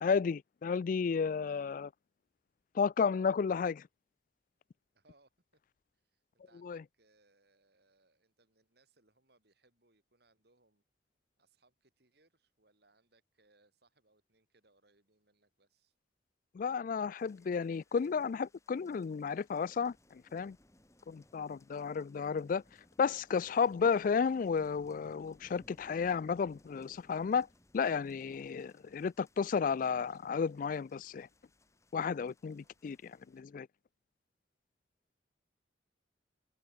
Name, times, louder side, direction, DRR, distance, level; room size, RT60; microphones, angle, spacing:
voice 1, 0.0-1.9 2.7-3.8 6.6-6.8 16.5-20.6 21.1-22.6 23.0-27.5 27.7-31.3 31.9-33.7, left 6 dB, 45° left, 0.3 m, -32 dB
voice 2, 4.9-5.6 5.9-10.8 11.4-16.0 32.5-32.9, right 2 dB, 60° right, 5.2 m, -71 dB
sound 1, 17.2-33.4, left 1 dB, 15° left, 1.8 m, -66 dB
head